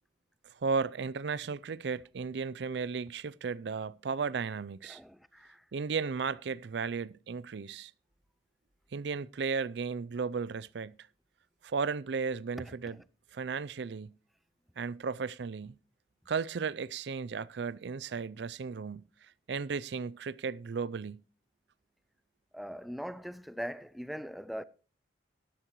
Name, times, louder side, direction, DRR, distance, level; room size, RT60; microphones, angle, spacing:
voice 1, 0.6-5.0 5.7-7.9 8.9-11.0 11.6-13.0 13.3-14.2 14.8-15.8 16.3-19.1 19.5-21.2, right 5 dB, 65° right, 0.4 m, -35 dB
voice 2, 4.9-5.6 22.5-24.6, equal, ahead, 0.4 m, -41 dB
13.5 x 11.0 x 3.1 m
head